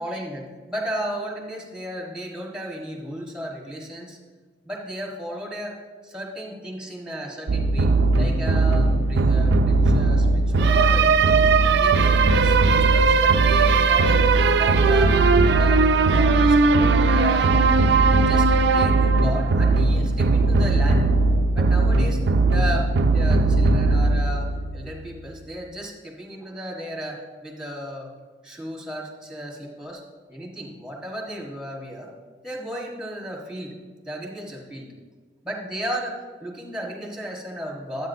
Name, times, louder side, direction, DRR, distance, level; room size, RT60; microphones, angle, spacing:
voice 1, 0.0-4.2 4.6-5.8 6.0-11.5 11.8-14.3 14.6-17.8 18.1-21.1 21.5-22.2 22.5-28.1 28.4-30.0 30.3-32.1 32.4-33.8 34.0-34.9 35.4-38.1, equal, 5° right, -2 dB, 1.4 m, -34 dB
sound 1, 7.5-25.1, right 3 dB, 75° right, 0.4 m, -18 dB
12.0 x 8.5 x 2.7 m, 1.4 s
head